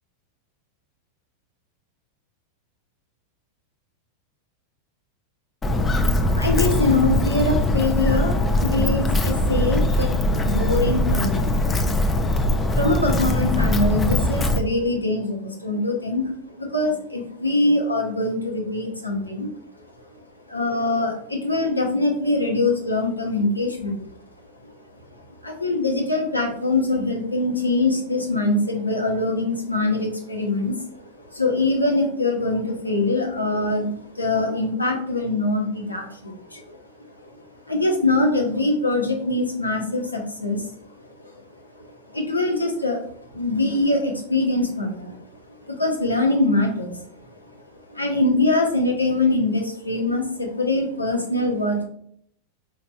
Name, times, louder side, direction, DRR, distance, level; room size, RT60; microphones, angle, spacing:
Walk footsteps, 5.6-14.6, left 1 dB, 15° left, 0.5 m, -21 dB
voice 1, 6.3-11.7 12.7-24.1 24.6-24.7 25.1-51.8, left 2 dB, 85° left, 2 dB, 1.0 m, -24 dB
5.0 x 4.6 x 2.3 m, 0.66 s
figure-of-eight pair, 90°, 0 cm